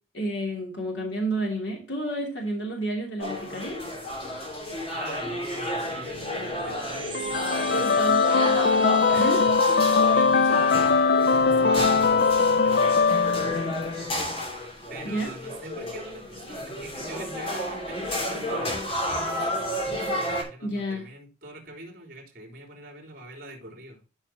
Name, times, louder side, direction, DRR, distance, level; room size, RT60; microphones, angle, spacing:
voice 1, 0.1-3.8 7.7-9.4 15.0-15.3 20.6-21.0, right 1 dB, 75° left, 3.0 m, -30 dB
sound 1, 3.2-20.4, equal, 30° left, 3.2 m, -32 dB
voice 2, 4.7-8.4 9.1-9.5 9.8-14.1 14.9-24.0, right 2 dB, 50° right, 3.5 m, -44 dB
sound 2, 6.5-11.6, right 7 dB, 25° right, 0.8 m, -42 dB
sound 3, 7.1-14.1, left 5 dB, 55° left, 0.6 m, -21 dB
13.0 x 5.8 x 2.8 m
head